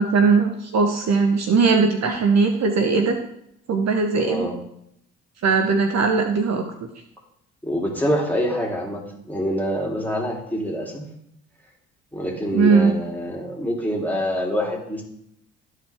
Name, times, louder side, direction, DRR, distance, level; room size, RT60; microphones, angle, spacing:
voice 1, 0.0-3.2 3.7-4.5 5.4-6.9 12.5-12.9, right 4 dB, 50° right, 5 dB, 1.0 m, -19 dB
voice 2, 4.2-4.5 7.6-11.0 12.1-15.0, equal, 5° left, -1 dB, 3.0 m, -26 dB
13.0 x 4.6 x 3.5 m, 0.76 s
hypercardioid pair, 50°, 35 cm